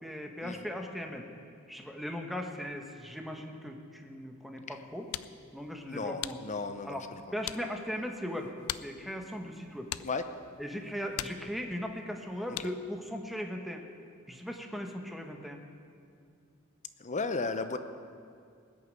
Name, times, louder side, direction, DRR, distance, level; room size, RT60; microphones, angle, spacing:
voice 1, 0.0-1.3 1.7-5.1 5.5-6.4 6.8-9.9 10.6-13.8 14.3-15.6, equal, ahead, 3 dB, 1.2 m, -38 dB
sound 1, 4.7-13.0, left 13 dB, 80° left, 0.4 m, -44 dB
voice 2, 5.9-7.2 10.0-10.2 12.6-12.7 17.0-17.8, left 3 dB, 35° left, 9 dB, 0.8 m, -34 dB
19.5 x 6.8 x 9.1 m, 2.3 s
head